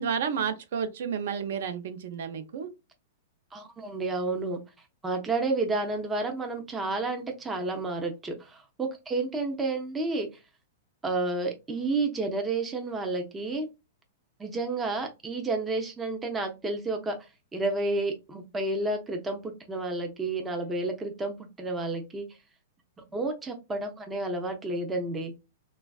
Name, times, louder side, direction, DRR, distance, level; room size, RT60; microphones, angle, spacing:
voice 1, 0.0-2.7, right 7 dB, 60° right, 9 dB, 0.6 m, -31 dB
voice 2, 3.5-4.6 5.0-10.3 11.0-13.7 14.4-17.2 17.5-22.3 23.1-25.3, right 2 dB, 10° right, 3 dB, 0.4 m, -30 dB
3.2 x 2.3 x 2.2 m, 0.26 s
supercardioid pair, 165°, 0 cm